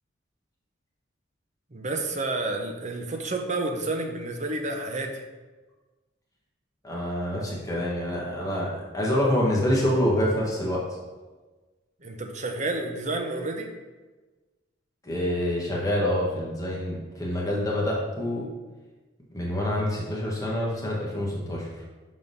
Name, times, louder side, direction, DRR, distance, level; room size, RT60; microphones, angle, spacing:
voice 1, 1.7-5.2 12.0-13.7, right 2 dB, 40° right, 3 dB, 0.7 m, -30 dB
voice 2, 6.8-10.8 15.0-18.5 19.3-21.7, left 1 dB, 20° left, -4 dB, 1.3 m, -26 dB
6.2 x 3.7 x 5.4 m, 1.3 s
head